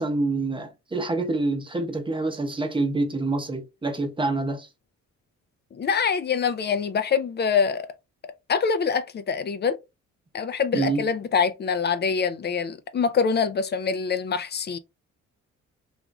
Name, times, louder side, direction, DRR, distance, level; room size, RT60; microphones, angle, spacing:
voice 1, 0.0-4.7 10.7-11.0, right 2 dB, 15° right, 0.8 m, -26 dB
voice 2, 5.7-7.8 8.5-9.8 10.3-14.8, left 6 dB, 35° left, 0.4 m, -24 dB
3.0 x 2.5 x 2.2 m
cardioid pair, 90°, 30 cm